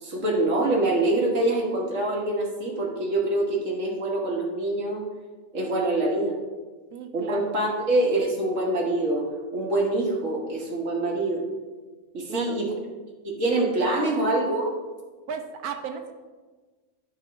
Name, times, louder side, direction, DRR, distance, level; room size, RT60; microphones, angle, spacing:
voice 1, 0.0-5.0 5.5-6.3 7.1-9.2 9.5-11.4 12.1-12.7 13.2-14.7, right 2 dB, 50° right, -1 dB, 1.5 m, -25 dB
voice 2, 6.9-7.6 12.3-12.6 15.3-16.1, right 7 dB, 70° right, 6 dB, 1.0 m, -35 dB
9.2 x 3.1 x 5.9 m, 1.3 s
omnidirectional pair, 1.8 m